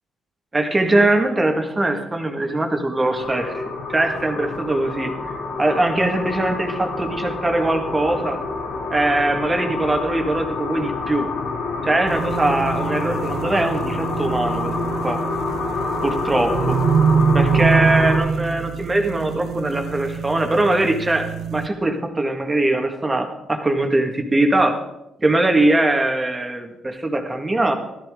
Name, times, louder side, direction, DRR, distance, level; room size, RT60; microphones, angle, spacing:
voice 1, 0.5-3.6 3.9-5.3 5.6-8.4 8.9-11.3 11.8-14.7 15.0-15.2 16.0-16.8 17.3-24.8 25.2-27.7, right 2 dB, 20° right, 4 dB, 1.9 m, -21 dB
sound 1, 3.1-18.2, left 3 dB, 85° left, 3.3 m, -27 dB
sound 2, 12.1-21.7, right 6 dB, 65° right, 0.7 m, -24 dB
14.5 x 13.0 x 3.8 m, 0.90 s
cardioid pair, 90°, 0 cm